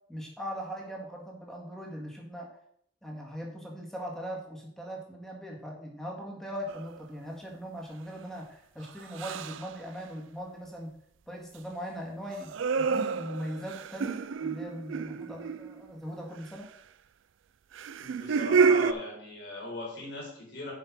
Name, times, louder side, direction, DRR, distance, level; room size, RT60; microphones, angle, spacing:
voice 1, 0.1-2.5 3.0-10.9 11.3-16.7, equal, ahead, -1 dB, 1.8 m, -40 dB
sound 1, 6.7-7.0 9.1-9.7 12.3-15.9 17.7-18.9, right 5 dB, 70° right, 0.4 m, -28 dB
voice 2, 18.0-20.7, left 1 dB, 55° left, -4 dB, 4.1 m, -39 dB
7.6 x 5.6 x 6.0 m, 0.69 s
head